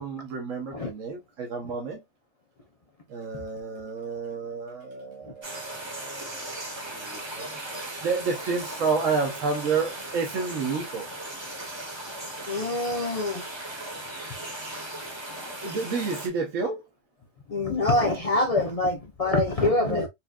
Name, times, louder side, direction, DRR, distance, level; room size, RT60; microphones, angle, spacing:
voice 1, 0.0-2.0 3.1-6.6 6.9-7.6 8.0-11.1 15.6-16.8 19.8-20.0, right 4 dB, 75° right, 1.2 m, -30 dB
sound 1, 5.4-16.3, right 1 dB, 20° right, 0.9 m, -37 dB
voice 2, 12.5-13.4 17.5-20.1, left 2 dB, 65° left, 0.3 m, -25 dB
4.3 x 2.6 x 2.3 m
omnidirectional pair, 1.4 m